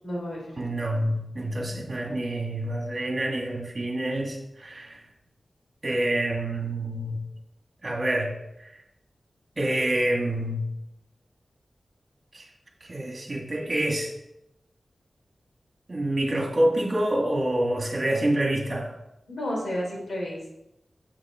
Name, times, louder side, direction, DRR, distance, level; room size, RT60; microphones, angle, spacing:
voice 1, 0.0-0.6 19.3-20.5, left 1 dB, 70° left, -3 dB, 3.1 m, -32 dB
voice 2, 0.6-5.0 5.8-7.2 7.8-8.3 8.7-8.8 9.6-10.6 12.3-12.5 12.8-14.1 15.9-18.9, right 1 dB, 40° right, 1 dB, 1.9 m, -27 dB
7.4 x 6.8 x 3.7 m, 0.86 s
wide cardioid pair, 85°, 0 cm